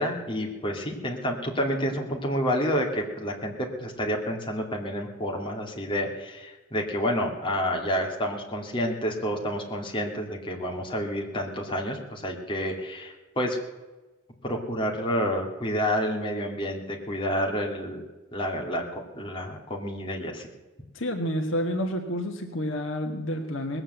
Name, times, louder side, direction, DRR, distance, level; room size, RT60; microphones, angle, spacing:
voice 1, 0.0-13.6 14.4-18.0 18.3-20.5, equal, 25° left, 0 dB, 2.5 m, -29 dB
voice 2, 20.9-23.8, equal, 70° left, 4 dB, 1.6 m, -29 dB
19.5 x 7.8 x 7.9 m, 1.2 s
head